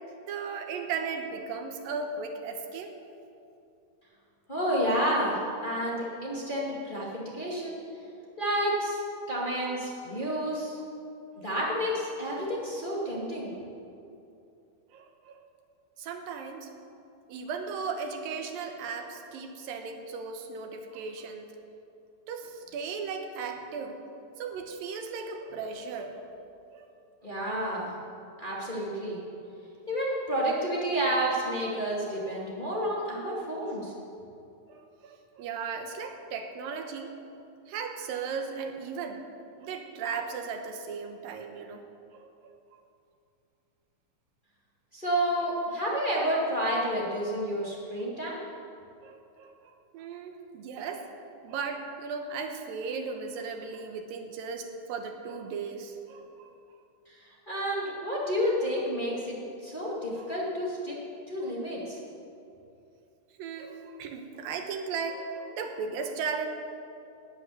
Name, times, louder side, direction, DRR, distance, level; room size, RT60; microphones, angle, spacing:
voice 1, 0.2-2.9 14.9-15.5 16.0-16.7 17.3-21.6 22.3-24.0 24.4-26.2 26.7-26.9 28.0-28.1 34.7-37.1 37.7-39.2 39.6-41.8 42.2-42.5 48.0-48.1 49.0-49.5 49.9-51.1 51.4-56.5 60.1-60.3 61.4-61.6 63.4-66.5, right 5 dB, 85° right, 5 dB, 2.9 m, -36 dB
voice 2, 4.5-7.8 8.4-9.0 9.3-10.8 11.4-13.5 27.2-27.9 28.4-29.2 29.9-33.9 44.9-48.4 57.1-57.2 57.5-59.4 59.6-61.0 61.3-62.0, equal, 15° left, -5 dB, 2.0 m, -30 dB
12.5 x 10.0 x 9.5 m, 2.6 s
omnidirectional pair, 3.9 m